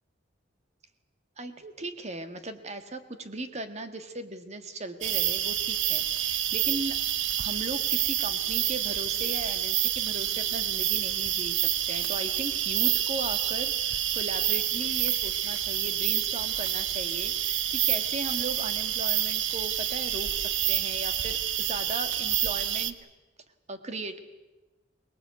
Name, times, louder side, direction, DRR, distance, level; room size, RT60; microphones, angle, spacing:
voice 1, 1.4-7.0 7.4-23.0 23.7-24.2, right 2 dB, 35° right, 9 dB, 1.7 m, -38 dB
sound 1, 5.0-22.9, right 11 dB, 80° right, 1.1 m, -28 dB
24.0 x 20.0 x 8.3 m, 1.1 s
head